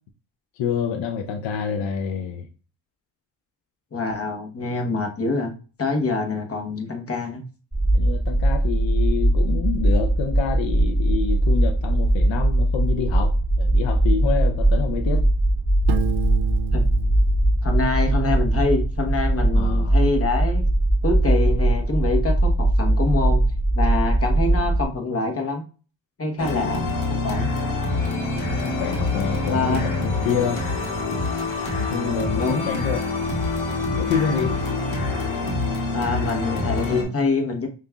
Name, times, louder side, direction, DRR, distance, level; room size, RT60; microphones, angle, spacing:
voice 1, 0.6-2.5 7.9-15.3 19.5-20.0 24.6-24.7 28.6-30.6 31.8-33.1 34.0-34.6, left 7 dB, 70° left, 3 dB, 0.7 m, -27 dB
voice 2, 3.9-5.5 5.8-7.4 16.7-16.8 17.6-20.6 21.0-23.4 23.7-25.6 26.2-26.8 27.2-27.5 29.5-29.8 32.0-32.7 35.9-37.7, left 3 dB, 30° left, 3 dB, 1.1 m, -25 dB
sound 1, 7.7-24.8, right 1 dB, ahead, 1.5 m, -20 dB
Piano, 15.9-18.6, right 10 dB, 60° right, 0.5 m, -32 dB
sound 2, 26.4-37.0, left 3 dB, 85° left, 1.3 m, -26 dB
5.3 x 2.6 x 2.3 m, 0.36 s
cardioid pair, 80°, 47 cm